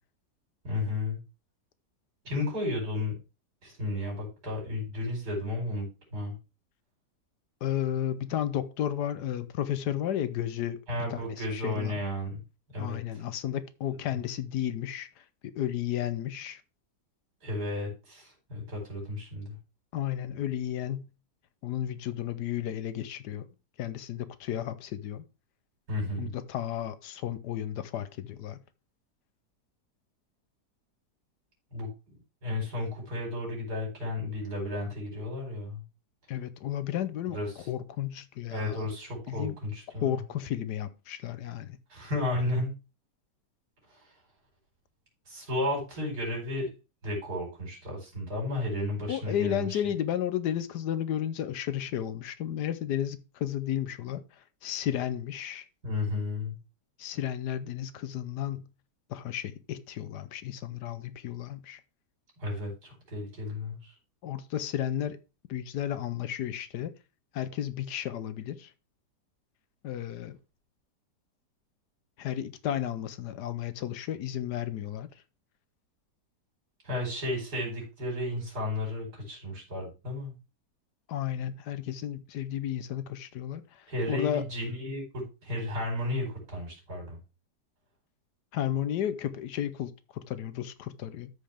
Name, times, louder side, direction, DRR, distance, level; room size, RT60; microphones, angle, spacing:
voice 1, 0.6-1.2 2.2-3.1 3.6-5.9 6.1-6.3 10.9-12.4 12.7-13.0 17.4-19.5 25.9-26.3 31.7-35.8 37.3-37.7 38.5-40.2 41.9-42.7 43.9-44.0 45.3-46.7 47.0-49.8 55.8-56.5 62.4-63.9 76.8-80.3 83.9-87.2, left 2 dB, 65° right, 5.0 m, -33 dB
voice 2, 7.6-10.8 11.1-12.0 12.8-16.6 19.9-21.1 21.6-23.5 23.8-25.2 26.2-28.6 36.3-38.9 39.3-39.6 40.0-41.8 49.1-55.6 57.0-58.7 59.1-61.8 64.2-65.2 65.5-66.9 67.3-68.7 69.8-70.4 72.2-75.1 81.1-84.5 88.5-91.3, left 10 dB, 75° left, 1.3 m, -33 dB
13.5 x 5.1 x 3.4 m
omnidirectional pair, 1.8 m